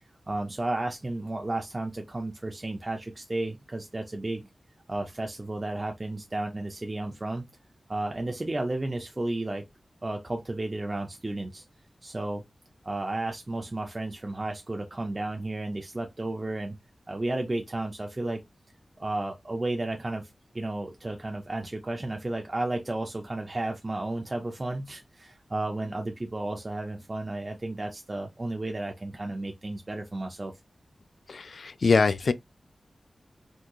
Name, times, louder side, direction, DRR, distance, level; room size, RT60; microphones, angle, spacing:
voice 1, 0.3-4.5 4.9-7.4 7.9-9.6 10.0-11.6 12.0-12.4 12.8-16.8 17.1-18.4 19.0-20.3 20.5-30.5, right 2 dB, 30° right, 0.4 m, -33 dB
voice 2, 31.3-32.3, left 4 dB, 70° left, 0.3 m, -23 dB
3.6 x 2.8 x 2.3 m
wide cardioid pair, 100°, 0 cm